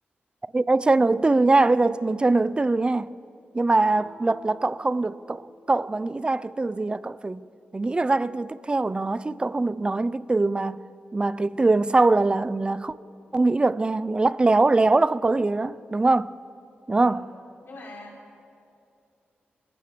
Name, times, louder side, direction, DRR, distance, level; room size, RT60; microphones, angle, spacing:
voice 1, 0.5-3.1 3.5-7.4 7.7-10.8 11.1-12.9 13.3-16.3 16.9-17.2, right 3 dB, 25° right, 0.5 m, -22 dB
Guitar, 3.7-6.1, equal, 50° right, 5.9 m, -51 dB
voice 2, 17.6-18.4, left 2 dB, 65° left, 6.4 m, -43 dB
25.5 x 15.5 x 6.8 m
cardioid pair, 85°, 4 cm